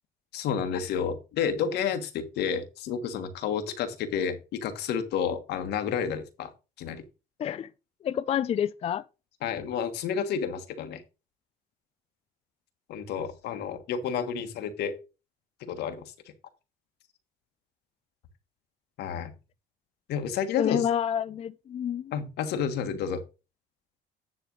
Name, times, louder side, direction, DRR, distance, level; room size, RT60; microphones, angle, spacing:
voice 1, 0.3-6.5 6.8-7.0 9.4-11.0 12.9-14.9 15.7-16.0 19.0-19.3 20.1-20.8 22.1-23.2, left 7 dB, 75° left, 1.5 m, -30 dB
voice 2, 8.0-9.0 20.6-22.1, left 9 dB, 35° left, 0.4 m, -28 dB
10.0 x 3.4 x 6.2 m
cardioid pair, 110°, 17 cm